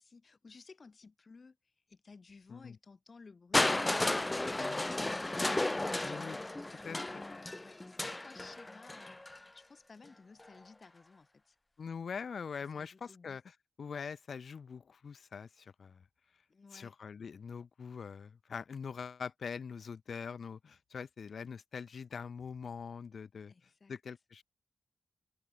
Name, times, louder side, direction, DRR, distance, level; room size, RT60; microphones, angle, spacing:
voice 1, 0.0-1.6 1.9-5.5 6.7-11.6 12.7-13.4 16.5-16.9 23.5-23.9, left 4 dB, 45° left, 5.6 m, -56 dB
Crushing, 3.5-9.4 10.4-10.5, left 2 dB, 20° left, 0.9 m, -33 dB
voice 2, 4.6-4.9 6.0-6.4 6.8-7.2 11.8-16.0 16.7-23.5 23.9-24.4, left 6 dB, 65° left, 1.4 m, -43 dB
wide cardioid pair, 120°, 0 cm